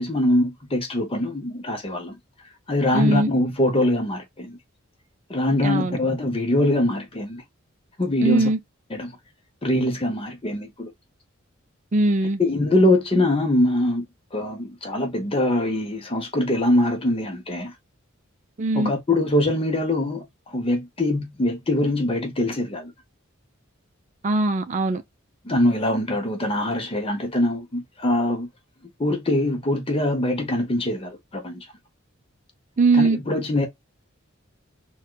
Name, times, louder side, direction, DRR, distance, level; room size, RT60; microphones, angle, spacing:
voice 1, 0.0-2.2 2.7-4.6 5.3-7.4 8.0-8.5 8.9-9.2 9.6-10.9 12.4-17.7 18.7-22.9 25.4-28.5 29.0-31.7 32.9-33.7, left 1 dB, 25° left, 0.8 m, -23 dB
voice 2, 2.9-3.3 5.6-6.0 8.2-8.6 11.9-12.4 18.6-18.9 24.2-25.0 32.8-33.2, right 2 dB, 35° right, 0.5 m, -20 dB
4.2 x 2.3 x 2.2 m
head